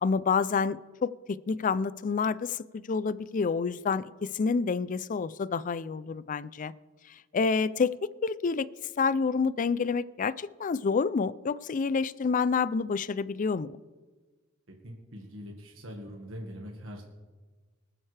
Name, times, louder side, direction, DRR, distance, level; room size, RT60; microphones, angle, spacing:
voice 1, 0.0-6.7 7.3-8.7 9.0-13.8, left 5 dB, 40° left, 17 dB, 0.4 m, -28 dB
voice 2, 14.7-17.0, equal, 70° right, 0 dB, 1.7 m, -43 dB
24.5 x 8.8 x 3.4 m, 1.3 s
head